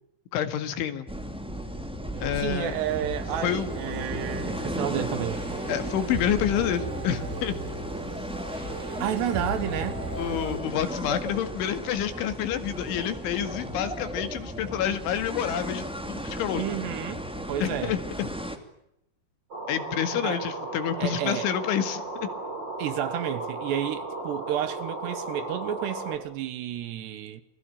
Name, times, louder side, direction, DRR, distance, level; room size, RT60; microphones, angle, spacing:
voice 1, 0.3-1.1 2.2-2.8 3.4-3.7 5.7-7.6 10.2-16.7 17.6-18.3 19.7-22.3, left 10 dB, 90° left, 4.4 m, -28 dB
sound 1, 1.1-18.6, equal, 5° right, 0.5 m, -35 dB
sound 2, 2.1-10.6, right 1 dB, 55° right, 7.9 m, -37 dB
voice 2, 2.4-5.5 9.0-10.0 16.5-18.0 20.2-20.4 21.0-21.5 22.8-27.4, right 11 dB, 70° right, 3.3 m, -31 dB
sound 3, 19.5-26.2, right 2 dB, 25° right, 5.6 m, -35 dB
28.5 x 20.5 x 9.1 m
omnidirectional pair, 5.3 m